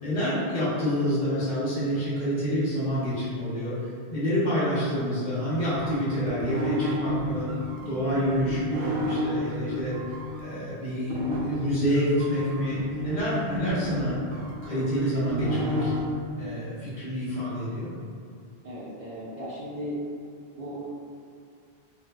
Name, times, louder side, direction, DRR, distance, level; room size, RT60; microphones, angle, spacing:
voice 1, 0.0-3.7 4.1-7.5 7.8-9.9 10.4-14.2 14.6-15.9 16.3-17.9, equal, 45° left, -11 dB, 1.1 m, -28 dB
sound 1, 5.7-10.4 11.1-16.0, equal, 80° right, 0.9 m, -31 dB
voice 2, 18.6-20.0 20.6-20.9, equal, 55° right, -9 dB, 0.5 m, -37 dB
3.7 x 2.6 x 2.3 m, 2.3 s
omnidirectional pair, 1.1 m